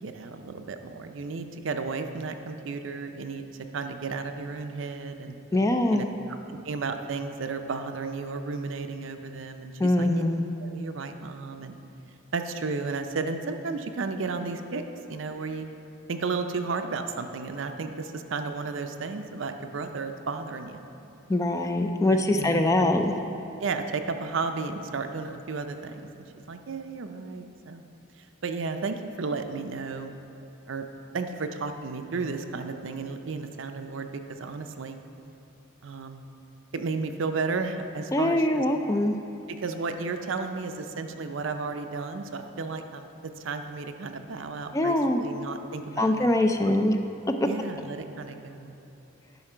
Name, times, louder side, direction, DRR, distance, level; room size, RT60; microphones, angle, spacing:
voice 1, 0.0-3.4 3.7-5.4 5.9-6.1 6.5-10.2 10.6-11.8 12.3-14.8 15.1-15.7 16.1-20.8 22.1-23.0 23.6-27.8 28.4-30.1 30.7-30.9 31.1-35.0 35.8-36.2 36.7-38.6 39.6-46.3 47.4-48.8, right 4 dB, 65° right, 7 dB, 0.5 m, -33 dB
voice 2, 5.5-6.1 9.8-10.4 21.3-23.1 38.1-39.2 44.7-45.2 46.0-47.0, left 1 dB, 15° left, 6 dB, 0.3 m, -23 dB
11.0 x 5.7 x 4.5 m, 2.8 s
head